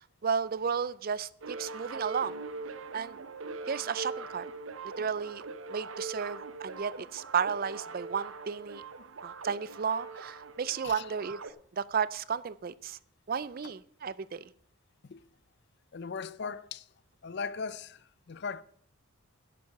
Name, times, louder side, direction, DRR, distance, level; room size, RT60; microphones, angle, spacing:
voice 1, 0.2-2.4 2.9-3.2 3.7-4.5 5.0-5.4 5.7-8.8 9.2-11.4 11.7-13.0 13.3-14.4, right 6 dB, 40° right, 0.4 m, -33 dB
sound 1, 1.4-11.5, right 4 dB, 65° right, 0.7 m, -42 dB
voice 2, 15.9-16.9 17.2-18.6, left 5 dB, 50° left, 0.5 m, -38 dB
11.0 x 8.5 x 6.5 m
head